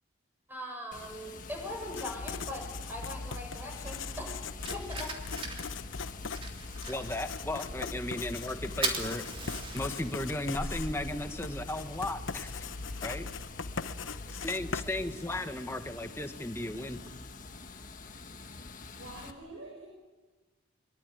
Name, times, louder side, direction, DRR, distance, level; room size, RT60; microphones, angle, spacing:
voice 1, 0.5-5.5, left 1 dB, 10° right, 3 dB, 6.8 m, -41 dB
Water, 0.9-19.3, left 3 dB, 40° left, 1.7 m, -47 dB
Writing, 1.8-15.6, left 4 dB, 80° left, 0.9 m, -40 dB
Fire, 3.8-13.5, right 3 dB, 30° right, 3.3 m, -41 dB
voice 2, 6.9-9.3 9.7-12.6 13.0-13.3 14.4-17.0, left 1 dB, 15° left, 7 dB, 1.4 m, -35 dB
voice 3, 19.0-19.9, right 2 dB, 90° right, -1 dB, 6.8 m, -46 dB
24.0 x 23.0 x 9.3 m, 1.2 s
head